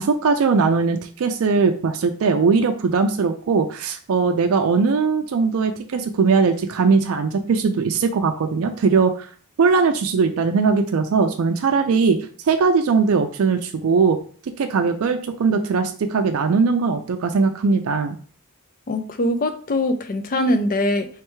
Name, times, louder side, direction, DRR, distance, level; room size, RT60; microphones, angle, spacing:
voice 1, 0.0-9.3 9.6-12.2 12.5-14.2 14.5-18.2, right 4 dB, 70° right, 6 dB, 0.4 m, -20 dB
voice 2, 18.9-21.1, left 1 dB, 40° left, 8 dB, 0.5 m, -22 dB
3.4 x 3.1 x 3.1 m, 0.43 s
head